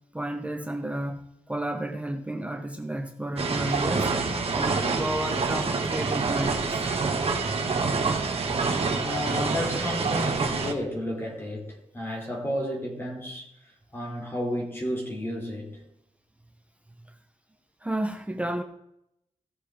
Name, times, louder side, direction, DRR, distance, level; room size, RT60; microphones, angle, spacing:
voice 1, 0.1-4.1 4.5-6.9 17.1-17.2 17.8-18.6, right 1 dB, 10° right, 0.8 m, -32 dB
sound 1, 3.4-10.7, right 4 dB, 50° right, 1.7 m, -27 dB
voice 2, 9.0-13.5 13.9-15.8, left 1 dB, 20° left, 3.4 m, -32 dB
17.5 x 6.9 x 3.7 m
wide cardioid pair, 135°, 12 cm